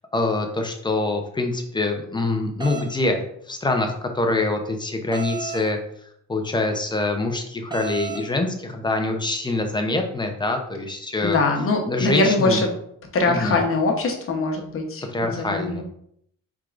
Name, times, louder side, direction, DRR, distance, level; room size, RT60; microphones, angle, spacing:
voice 1, 0.1-5.8 6.3-11.4 11.9-12.6 13.2-13.6 15.1-15.8, left 2 dB, 15° left, 4 dB, 0.7 m, -25 dB
sound 1, 2.6-2.9 5.1-5.7 7.7-8.3, right 5 dB, 15° right, 0.8 m, -32 dB
voice 2, 11.2-12.7 13.1-15.8, left 3 dB, 45° left, 3 dB, 1.0 m, -22 dB
4.6 x 3.6 x 2.5 m, 0.71 s
cardioid pair, 90°, 30 cm